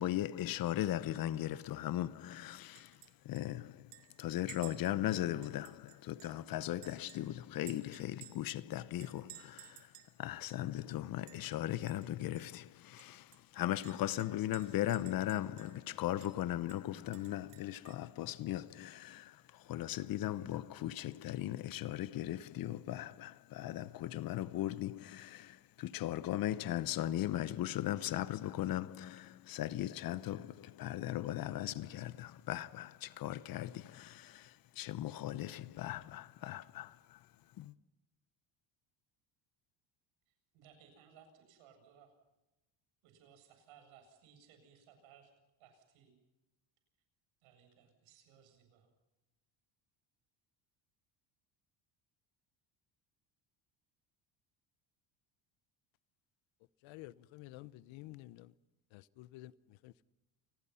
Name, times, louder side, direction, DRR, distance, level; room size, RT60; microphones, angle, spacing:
voice 1, 0.0-3.0 3.2-9.9 10.2-37.2 37.6-37.7, left 13 dB, 45° left, 0.9 m, -38 dB
Chink clink, 2.7-3.1 3.3-3.4 3.9-6.4 6.8-8.6 9.0-10.1 10.5-10.6 10.9-11.6 11.9-12.1 12.3-12.4 13.0-15.9 16.2-16.3 16.7-18.1, right 14 dB, 65° right, 3.3 m, -56 dB
voice 2, 40.3-42.1 43.0-45.3 45.6-46.1 47.4-48.9, right 8 dB, 85° right, 7.8 m, -62 dB
voice 3, 56.8-58.5 58.9-60.1, left 17 dB, 75° left, 1.0 m, -52 dB
29.0 x 20.5 x 5.7 m
cardioid pair, 160°, 47 cm